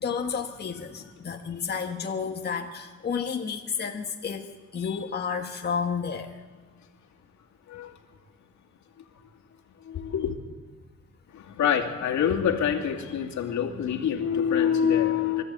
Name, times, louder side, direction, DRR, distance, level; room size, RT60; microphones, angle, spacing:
voice 1, 0.0-4.5 4.7-6.3, left 6 dB, 35° left, 2 dB, 1.5 m, -31 dB
voice 2, 9.9-10.3 11.5-15.4, left 8 dB, 70° left, 1 dB, 2.7 m, -25 dB
24.5 x 14.0 x 8.3 m, 1.4 s
cardioid pair, 90°, 30 cm